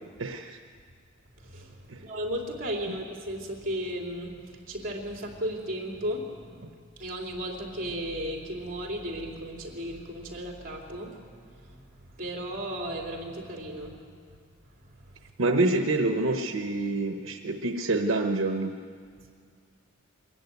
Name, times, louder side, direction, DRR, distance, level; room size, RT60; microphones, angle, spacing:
voice 1, 0.2-0.6 1.9-2.0 15.4-18.7, right 2 dB, 85° right, 5 dB, 0.9 m, -27 dB
voice 2, 1.4-6.7 7.0-11.2 11.6-11.8 12.2-14.0 14.9-15.3, equal, 45° right, 0 dB, 3.4 m, -35 dB
23.0 x 14.0 x 9.5 m, 2.1 s
head